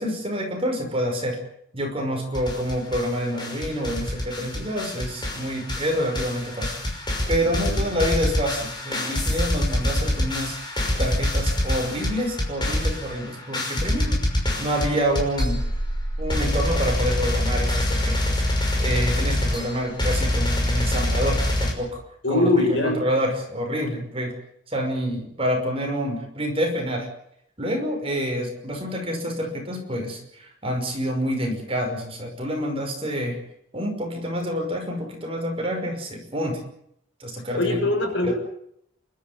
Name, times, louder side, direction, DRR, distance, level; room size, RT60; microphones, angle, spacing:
voice 1, 0.0-1.4 1.7-14.2 14.6-15.6 16.2-22.0 22.3-24.4 24.7-27.1 27.6-33.4 33.7-36.6 37.2-37.9 38.2-38.3, equal, 30° right, 2 dB, 5.7 m, -27 dB
sound 1, 2.3-3.1 3.4-21.7, left 1 dB, 20° left, 5.8 m, -25 dB
voice 2, 22.2-23.1 37.5-38.3, left 2 dB, 65° left, 3 dB, 6.7 m, -23 dB
28.5 x 13.0 x 9.6 m, 0.72 s
head